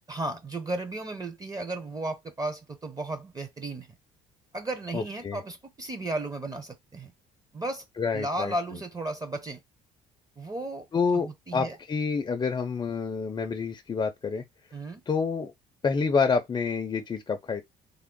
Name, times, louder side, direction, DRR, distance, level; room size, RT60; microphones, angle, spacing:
voice 1, 0.1-3.9 4.5-7.1 7.5-7.8 8.1-9.6 10.4-10.9 11.2-11.8 14.7-15.0, right 2 dB, 20° right, 0.6 m, -34 dB
voice 2, 4.9-5.4 8.0-8.5 10.9-14.4 15.1-15.5 15.8-17.6, left 5 dB, 25° left, 0.4 m, -28 dB
3.5 x 2.0 x 3.7 m
cardioid pair, 110°, 17 cm